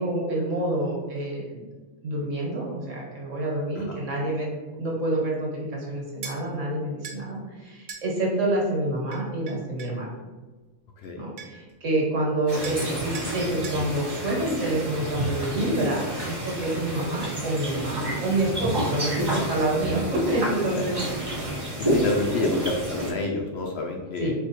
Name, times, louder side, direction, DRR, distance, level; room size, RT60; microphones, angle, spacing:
voice 1, 0.0-1.6 2.0-4.5 4.8-10.1 11.2-21.0 24.2-24.3, right 1 dB, 70° right, -3 dB, 1.5 m, -27 dB
sound 1, 6.2-6.4 7.0-7.2 7.9-8.1 9.1-10.0 11.0-11.1 11.4-11.7 12.6-12.9 13.1-13.3 13.6-13.8, right 5 dB, 90° right, 1.2 m, -39 dB
voice 2, 11.0-11.3 20.8-20.9 21.8-24.3, left 3 dB, 65° left, 1 dB, 0.7 m, -29 dB
sound 2, 12.5-23.1, right 1 dB, 20° right, 0.8 m, -29 dB
4.8 x 2.3 x 4.3 m, 1.3 s
omnidirectional pair, 1.4 m